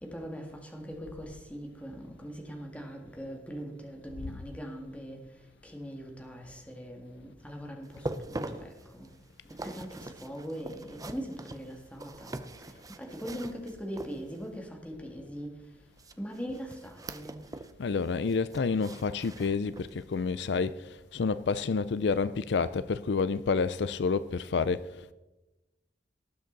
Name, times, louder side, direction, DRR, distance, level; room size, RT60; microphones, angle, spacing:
voice 1, 0.0-5.2 5.6-9.1 9.6-12.3 13.0-15.5 16.2-17.4, equal, 10° left, 2.0 m, -41 dB
sound 1, 7.8-14.6 16.0-17.8 18.1-20.0 20.5-20.6 21.2-21.3, right 2 dB, 20° right, 0.6 m, -43 dB
voice 2, 17.8-25.1, left 4 dB, 70° left, 0.4 m, -29 dB
18.5 x 7.9 x 4.0 m
head